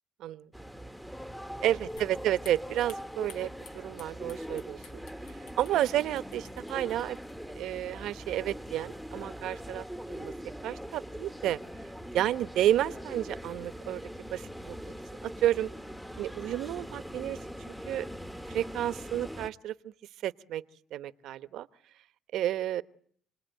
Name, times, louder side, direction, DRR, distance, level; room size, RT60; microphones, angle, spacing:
sound 1, 0.5-19.5, equal, 5° left, 1.3 m, -42 dB
voice 1, 1.6-3.5 3.7-5.0 5.5-7.2 7.6-10.3 10.6-11.6 12.1-14.0 14.3-14.7 15.2-15.7 16.2-17.4 17.9-18.1 18.5-19.9 20.2-20.6 20.9-21.7 22.3-22.8, right 12 dB, 80° right, 14 dB, 1.0 m, -31 dB
sound 2, 2.0-8.5, left 6 dB, 85° left, 3.7 m, -56 dB
29.0 x 20.5 x 9.1 m, 0.63 s
cardioid pair, 85°, 0 cm